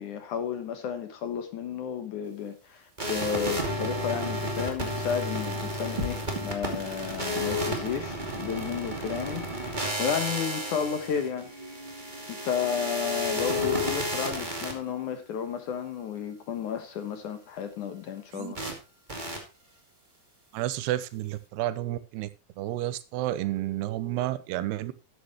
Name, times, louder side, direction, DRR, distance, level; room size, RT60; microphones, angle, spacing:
voice 1, 0.0-11.5 12.3-18.6, left 7 dB, 65° left, 8 dB, 2.3 m, -32 dB
sound 1, 3.0-14.7 18.5-18.7 19.1-19.4, left 1 dB, 15° right, 1.8 m, -32 dB
sound 2, 6.0-16.6, right 1 dB, 35° right, 2.6 m, -44 dB
voice 2, 20.5-22.3 22.6-24.9, right 14 dB, 85° right, 15 dB, 3.0 m, -31 dB
13.0 x 9.4 x 3.1 m, 0.31 s
omnidirectional pair, 4.6 m